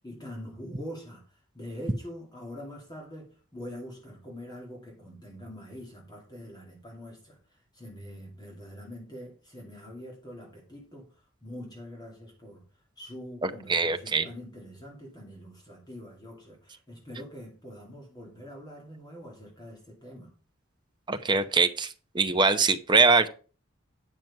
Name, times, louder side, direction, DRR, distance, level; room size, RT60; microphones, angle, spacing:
voice 1, 0.0-11.1 11.4-12.6 13.0-20.3, equal, 20° left, -1 dB, 2.5 m, -44 dB
voice 2, 13.4-14.3 21.1-23.3, right 4 dB, 20° right, 8 dB, 0.9 m, -23 dB
9.3 x 6.2 x 5.4 m, 0.37 s
head